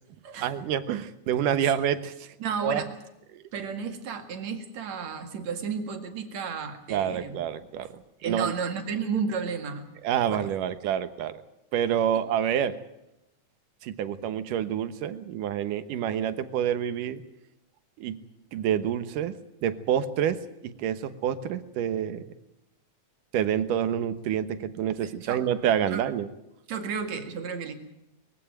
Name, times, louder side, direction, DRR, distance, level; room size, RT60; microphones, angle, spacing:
voice 1, 0.4-2.3 2.6-2.8 3.3-3.4 6.9-8.5 10.0-11.3 11.7-12.8 13.8-17.2 18.0-18.2 18.5-19.3 19.6-22.2 23.3-26.3, right 9 dB, 80° right, 12 dB, 2.8 m, -28 dB
voice 2, 2.4-2.9 3.5-7.4 8.2-9.9 10.3-10.5 25.0-25.4 25.9-26.0 26.7-27.7, right 6 dB, 60° right, 6 dB, 3.1 m, -32 dB
22.0 x 16.0 x 9.1 m, 0.89 s
omnidirectional pair, 3.7 m